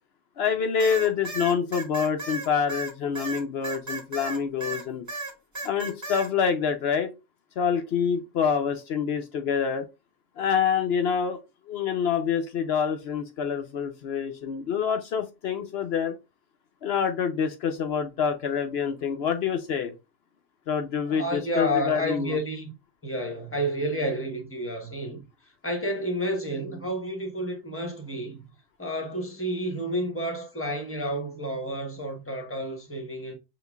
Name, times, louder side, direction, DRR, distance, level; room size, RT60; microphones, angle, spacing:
voice 1, 0.4-5.0 5.6-7.1 7.6-9.8 10.4-11.4 11.7-16.1 16.8-19.9 20.7-22.4, left 7 dB, 60° left, 0.7 m, -26 dB
sound 1, 0.8-4.8 5.1-6.3, right 2 dB, 20° right, 0.5 m, -34 dB
voice 2, 21.1-22.7 23.0-25.3 25.6-28.4 28.8-33.3, equal, 10° left, 0.9 m, -30 dB
5.7 x 3.0 x 2.2 m
omnidirectional pair, 1.4 m